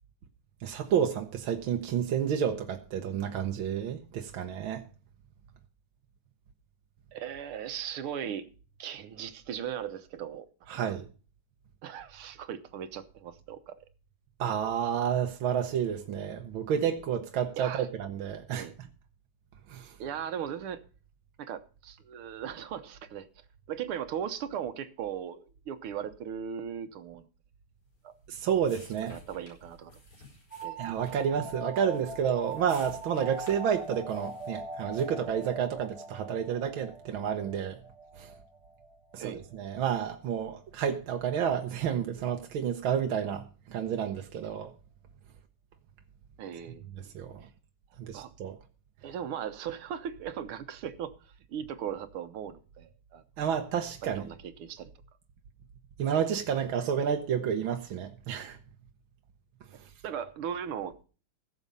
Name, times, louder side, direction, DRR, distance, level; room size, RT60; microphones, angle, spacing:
voice 1, 0.6-4.8 10.7-11.0 14.4-18.9 19.7-19.9 28.3-29.2 30.8-37.8 38.2-38.3 39.1-44.7 47.1-47.4 48.0-48.6 53.4-54.3 56.0-58.6, right 8 dB, 70° right, 1.8 m, -30 dB
voice 2, 7.1-8.5 8.8-10.5 10.7-10.9 11.8-13.7 17.6-17.9 18.5-18.7 20.0-20.8 21.4-23.3 23.7-27.3 28.0-28.1 29.0-29.9 30.6-30.8 39.2-39.4 46.4-47.0 48.1-48.3 49.0-53.2 54.0-54.9 60.0-60.9, right 9 dB, 90° right, 1.9 m, -38 dB
sound 1, 27.9-35.4, left 2 dB, 85° left, 6.8 m, -55 dB
sound 2, 30.5-39.9, right 3 dB, 20° right, 1.1 m, -42 dB
16.5 x 7.3 x 5.4 m
omnidirectional pair, 2.3 m